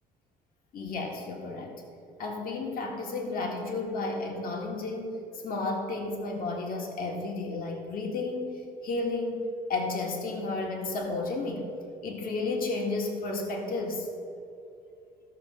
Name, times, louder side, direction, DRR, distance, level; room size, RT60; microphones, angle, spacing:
voice 1, 0.7-1.8 2.2-5.2 5.4-9.4 9.7-11.7 12.0-14.1, left 3 dB, 60° left, 1 dB, 1.8 m, -32 dB
14.0 x 6.3 x 5.7 m, 2.6 s
cardioid pair, 110°, 17 cm